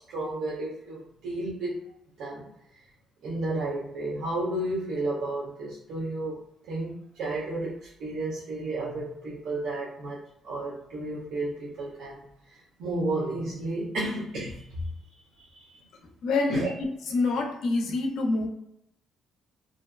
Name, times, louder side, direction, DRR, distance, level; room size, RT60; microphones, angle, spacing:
voice 1, 0.1-1.9 2.2-2.4 3.2-6.4 6.7-10.2 10.4-12.2 12.8-14.7 15.4-15.8 16.5-16.7, right 2 dB, 80° right, -6 dB, 0.6 m, -32 dB
voice 2, 16.2-16.7 17.1-18.5, left 3 dB, 80° left, 3 dB, 0.5 m, -26 dB
2.5 x 2.1 x 2.3 m, 0.78 s
cardioid pair, 90°, 0 cm